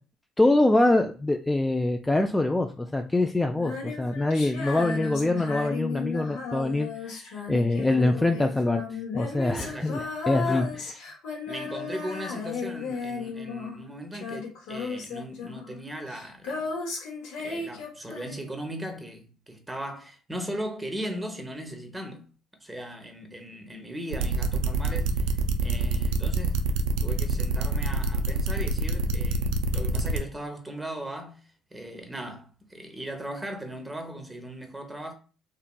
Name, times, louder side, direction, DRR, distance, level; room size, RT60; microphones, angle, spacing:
voice 1, 0.4-10.9, left 2 dB, 15° left, 0.3 m, -24 dB
Female singing, 3.5-13.9 14.1-18.6, left 5 dB, 75° left, 0.9 m, -35 dB
voice 2, 9.6-10.1 10.4-10.7 11.5-16.7 17.4-22.3 22.6-31.4 31.7-35.1, right 1 dB, 15° right, 0.8 m, -38 dB
sound 1, 24.1-30.2, right 4 dB, 80° right, 0.3 m, -26 dB
2.8 x 2.4 x 2.2 m
hypercardioid pair, 60°, 0 cm